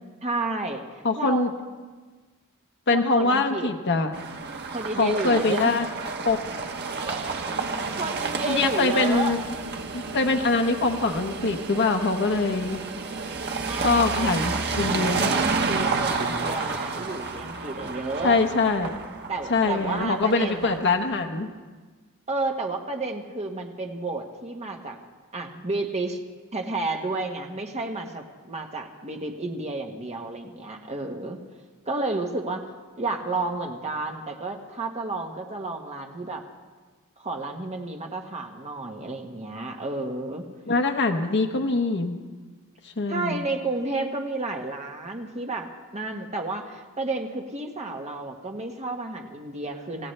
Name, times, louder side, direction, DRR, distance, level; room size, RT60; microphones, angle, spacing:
voice 1, 0.2-0.8 1.2-1.5 2.9-3.7 4.7-5.7 7.0-7.6 7.9-9.4 13.6-14.3 15.0-18.4 19.3-20.8 22.3-25.0 25.3-26.2 26.5-31.4 31.9-32.6 33.0-36.4 37.2-40.5 43.1-45.7 45.9-50.1, right 2 dB, 30° right, 2 dB, 1.4 m, -31 dB
voice 2, 1.0-1.5 2.9-4.1 5.0-5.9 6.2-6.4 8.4-9.4 9.9-12.8 13.8-15.3 18.2-18.9 19.5-21.5 40.7-42.2 43.0-43.4, left 3 dB, 55° left, 4 dB, 1.0 m, -23 dB
sound 1, 4.1-21.1, right 4 dB, 50° right, 1.2 m, -30 dB
27.0 x 16.0 x 3.3 m, 1.4 s
head